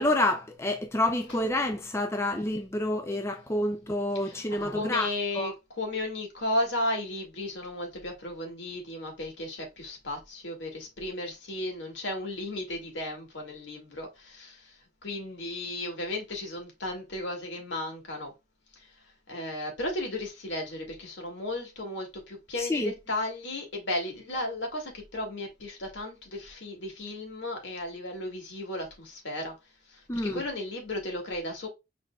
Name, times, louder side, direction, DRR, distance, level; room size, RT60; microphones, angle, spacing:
voice 1, 0.0-5.1 5.3-5.5 22.6-22.9 30.1-30.4, left 1 dB, 15° left, 0.5 m, -28 dB
voice 2, 4.2-14.8 15.0-18.3 18.8-18.9 19.3-29.5 29.9-30.0 30.3-31.7, left 1 dB, 75° left, 2.1 m, -34 dB
5.3 x 4.0 x 2.3 m
head